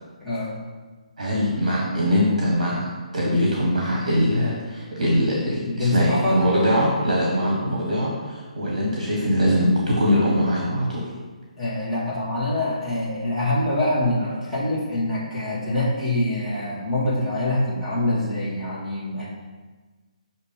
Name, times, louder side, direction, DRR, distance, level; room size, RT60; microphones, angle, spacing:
voice 1, 0.2-0.6 5.6-6.4 11.6-19.3, left 1 dB, ahead, -13 dB, 1.7 m, -25 dB
voice 2, 1.2-2.9 3.1-11.1, equal, 55° right, -3 dB, 1.2 m, -22 dB
6.6 x 2.8 x 5.1 m, 1.3 s
figure-of-eight pair, 135°, 4 cm